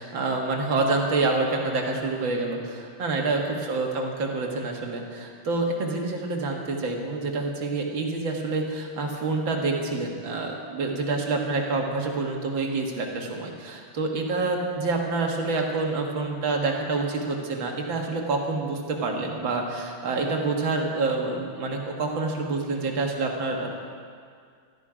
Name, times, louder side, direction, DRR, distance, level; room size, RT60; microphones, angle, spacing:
voice 1, 0.0-23.7, right 3 dB, 65° right, 1 dB, 2.4 m, -27 dB
16.5 x 13.5 x 5.0 m, 2.1 s
omnidirectional pair, 2.3 m